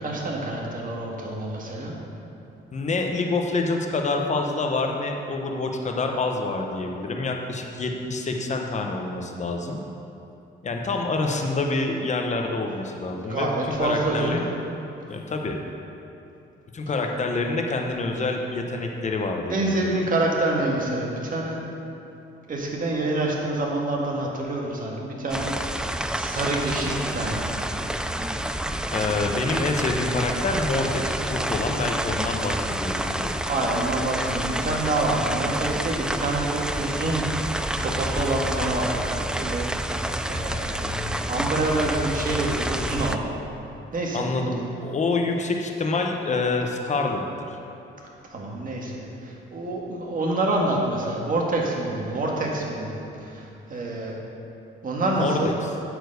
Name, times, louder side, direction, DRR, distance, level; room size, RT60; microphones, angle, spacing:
voice 1, 0.0-1.9 13.3-14.4 19.5-21.6 22.5-25.8 26.1-27.6 33.4-37.3 37.7-43.3 43.9-44.3 48.2-54.2 54.8-55.5, right 2 dB, 45° right, -2 dB, 1.8 m, -27 dB
voice 2, 2.7-9.8 10.6-13.5 13.8-14.5 15.1-15.6 16.7-19.9 28.9-33.3 44.1-47.6 55.1-55.5, left 3 dB, 35° left, 2 dB, 1.0 m, -27 dB
sound 1, 25.3-43.2, right 1 dB, 5° right, 0.3 m, -28 dB
9.3 x 4.6 x 6.7 m, 2.8 s
cardioid pair, 90°, 20 cm